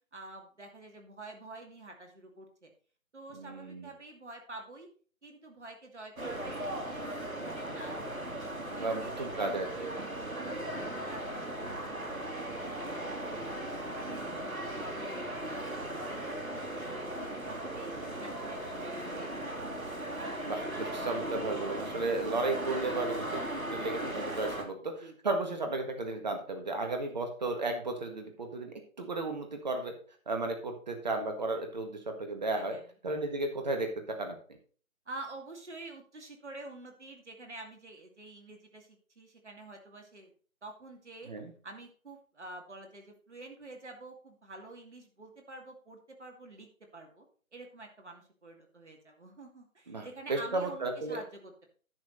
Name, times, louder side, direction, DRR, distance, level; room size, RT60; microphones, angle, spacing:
voice 1, 0.1-2.7 3.1-4.9 5.2-8.0 8.4-9.5 9.8-12.7 13.0-14.4 14.8-15.2 15.5-19.5 25.0-25.1 32.5-32.9 35.1-40.3 40.6-41.3 41.6-47.3 47.5-51.7, right 2 dB, 55° right, 3 dB, 2.6 m, -48 dB
voice 2, 3.3-3.9 8.8-9.9 20.4-23.4 23.7-29.9 30.3-32.8 33.0-34.4 41.3-41.5 49.9-51.2, right 2 dB, 30° right, 5 dB, 1.6 m, -34 dB
sound 1, 6.2-24.6, right 1 dB, 85° right, 2.4 m, -37 dB
10.5 x 7.2 x 4.1 m, 0.41 s
figure-of-eight pair, 155°, 41 cm